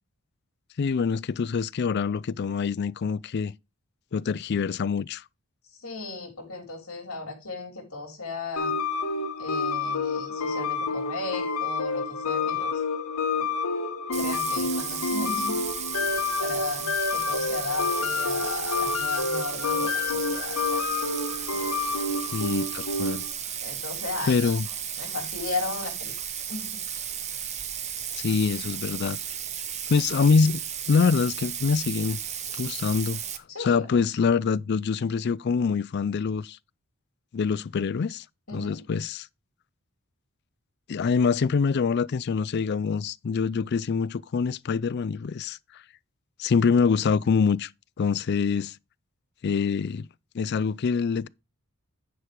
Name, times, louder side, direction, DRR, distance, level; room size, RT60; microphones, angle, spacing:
voice 1, 0.8-3.5 4.1-5.2 22.3-23.2 24.3-24.7 28.2-29.2 29.9-30.6 30.9-32.2 32.6-33.2 33.6-36.6 37.3-38.2 38.5-39.3 40.9-45.8 46.4-47.7 48.0-48.8 49.4-50.1 50.3-51.3, left 5 dB, 50° left, 0.4 m, -25 dB
voice 2, 5.8-8.7 9.4-12.7 13.4-13.5 14.2-15.6 16.4-20.8 21.5-21.6 23.6-24.5 25.0-26.1 26.5-26.7 33.5-34.0 38.5-38.8, left 3 dB, 65° left, 3.3 m, -35 dB
sound 1, 8.6-23.3, left 4 dB, 85° left, 1.3 m, -28 dB
Bathtub (filling or washing), 14.1-33.4, right 9 dB, 30° right, 0.8 m, -34 dB
10.0 x 4.7 x 5.0 m
head